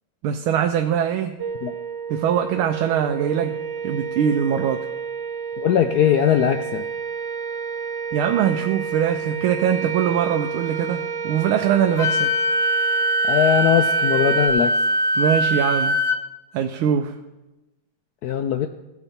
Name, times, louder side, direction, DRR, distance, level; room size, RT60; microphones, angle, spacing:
voice 1, 0.2-1.4 2.1-3.5 3.8-4.8 8.1-12.3 15.2-16.0 16.5-17.1, right 9 dB, 90° right, 5 dB, 1.5 m, -22 dB
sound 1, 1.4-14.5, right 6 dB, 70° right, 0.6 m, -31 dB
voice 2, 5.6-6.8 13.3-14.8 18.2-18.7, left 9 dB, 85° left, 8 dB, 0.8 m, -20 dB
Wind instrument woodwind instrument, 12.0-16.2, equal, 55° left, 1.1 m, -21 dB
16.5 x 6.8 x 4.3 m, 1.0 s
omnidirectional pair, 2.2 m